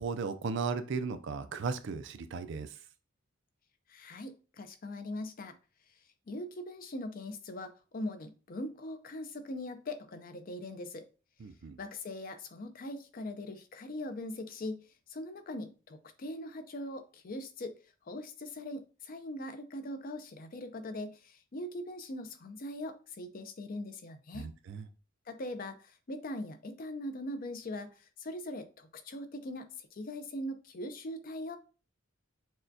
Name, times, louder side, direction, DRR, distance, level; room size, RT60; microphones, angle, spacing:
voice 1, 0.0-2.7 11.4-11.8 24.3-24.8, right 5 dB, 60° right, 0.4 m, -36 dB
voice 2, 3.9-5.5 6.3-11.1 11.8-14.8 15.1-17.8 18.0-24.5 25.3-31.6, left 1 dB, 40° left, 0.5 m, -41 dB
6.2 x 2.2 x 2.6 m
head